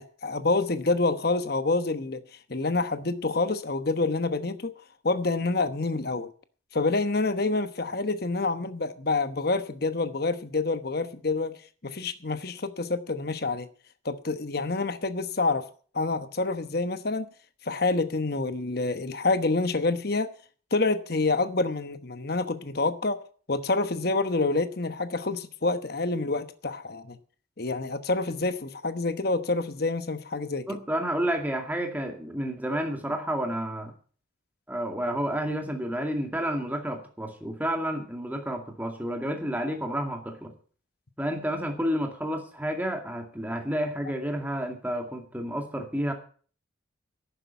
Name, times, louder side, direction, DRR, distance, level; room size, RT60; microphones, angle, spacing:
voice 1, 0.0-2.2 2.5-4.7 5.0-6.3 6.7-11.6 11.8-13.7 14.0-15.7 15.9-17.3 17.6-20.3 20.7-23.2 23.5-27.2 27.6-30.8, left 3 dB, 50° left, 1.1 m, -27 dB
voice 2, 30.7-33.9 34.7-40.5 41.2-46.1, equal, 10° right, 2.2 m, -30 dB
11.5 x 10.0 x 7.1 m
head